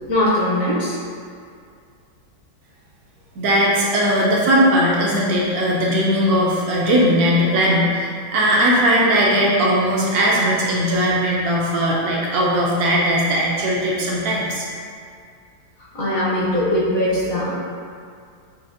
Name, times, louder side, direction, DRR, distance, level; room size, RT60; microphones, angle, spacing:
voice 1, 0.1-1.0 15.9-17.5, left 1 dB, 60° left, -8 dB, 0.9 m, -20 dB
voice 2, 3.4-14.6, equal, 75° right, -4 dB, 0.9 m, -18 dB
5.9 x 2.4 x 2.5 m, 2.2 s
omnidirectional pair, 2.0 m